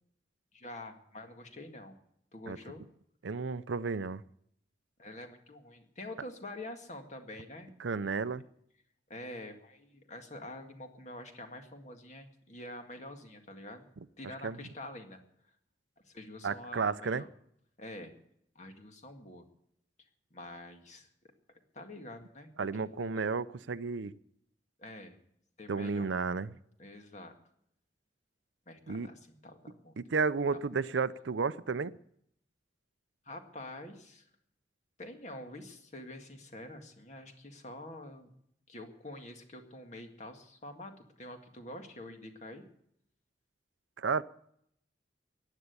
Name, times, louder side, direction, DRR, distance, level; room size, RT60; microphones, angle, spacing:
voice 1, 0.5-2.0 2.3-2.8 5.0-7.7 9.1-13.9 14.2-15.2 16.1-17.3 17.8-18.1 18.6-19.5 20.3-21.1 21.7-22.5 22.9-23.3 24.8-25.2 25.6-26.1 26.8-27.3 28.7-29.9 33.3-34.2 35.0-38.3 38.7-40.9 41.2-42.6, left 1 dB, 40° left, 5 dB, 2.0 m, -46 dB
voice 2, 3.2-4.2 7.8-8.4 14.4-14.6 16.4-17.2 22.6-24.1 25.7-26.5 28.9-29.1 30.0-31.9 44.0-44.2, right 4 dB, 85° right, 16 dB, 0.6 m, -32 dB
15.0 x 10.0 x 8.2 m, 0.71 s
head